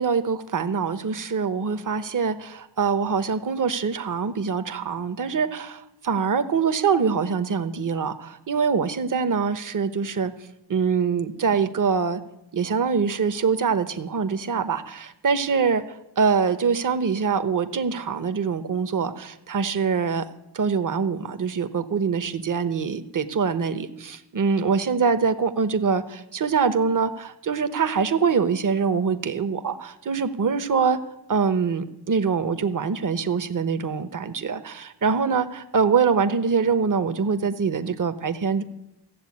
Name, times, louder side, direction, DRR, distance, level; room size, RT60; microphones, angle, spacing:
voice 1, 0.0-10.3 10.7-12.2 12.5-15.8 16.2-20.3 20.5-31.0 31.3-38.6, right 5 dB, 50° right, 10 dB, 1.0 m, -24 dB
15.0 x 7.6 x 8.6 m, 0.88 s
cardioid pair, 65°, 42 cm